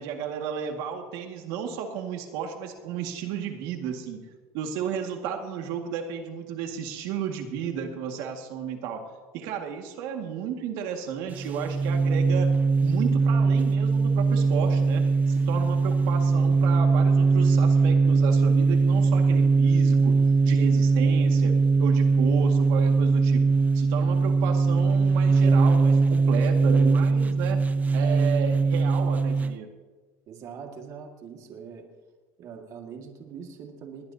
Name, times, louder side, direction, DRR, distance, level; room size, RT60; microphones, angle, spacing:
voice 1, 0.0-4.2 4.5-9.1 9.3-12.5 12.8-23.4 23.7-27.6 27.9-29.7, right 7 dB, 65° right, 3 dB, 2.0 m, -33 dB
sound 1, 11.3-29.6, right 4 dB, 20° right, 0.6 m, -21 dB
voice 2, 30.3-31.9 32.4-34.1, right 6 dB, 45° right, 2 dB, 2.0 m, -42 dB
20.5 x 19.5 x 2.8 m, 1.3 s
cardioid pair, 140°, 8 cm